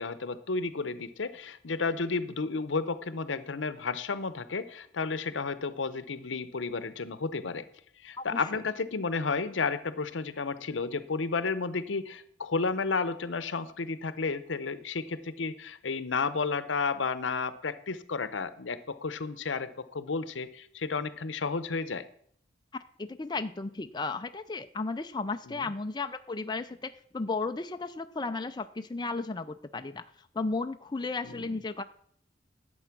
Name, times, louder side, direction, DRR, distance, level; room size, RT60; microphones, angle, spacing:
voice 1, 0.0-7.6 8.0-22.0 25.5-25.7 31.2-31.6, left 4 dB, 90° left, 14 dB, 0.8 m, -32 dB
voice 2, 8.2-8.6 23.0-30.0 30.3-31.8, left 3 dB, 25° left, 8 dB, 0.5 m, -34 dB
11.0 x 7.9 x 6.0 m, 0.63 s
head